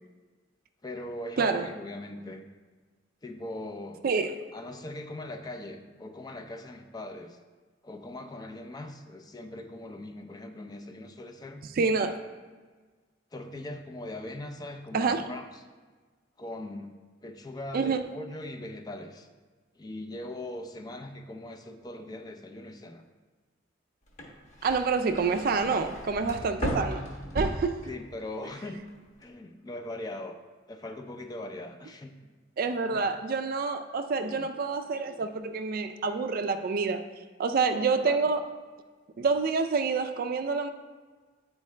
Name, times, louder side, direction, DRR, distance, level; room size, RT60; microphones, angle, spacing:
voice 1, 0.8-2.4 3.2-4.0 4.5-7.4 7.8-11.6 13.3-15.6 16.4-16.9 17.2-19.3 19.8-23.0 25.7-25.8 27.9-28.8 29.2-30.4 30.7-32.1 34.2-34.5 38.0-38.2, left 1 dB, 20° left, 5 dB, 0.4 m, -40 dB
voice 2, 11.8-12.2 14.9-15.2 17.7-18.0 24.6-27.0 27.3-27.9 32.6-37.0 37.4-38.4 39.2-40.7, right 4 dB, 50° right, 8 dB, 0.4 m, -27 dB
sound 1, 24.1-28.3 28.7-29.2, equal, 40° left, 1.0 m, -36 dB
8.4 x 4.5 x 3.2 m, 1.4 s
head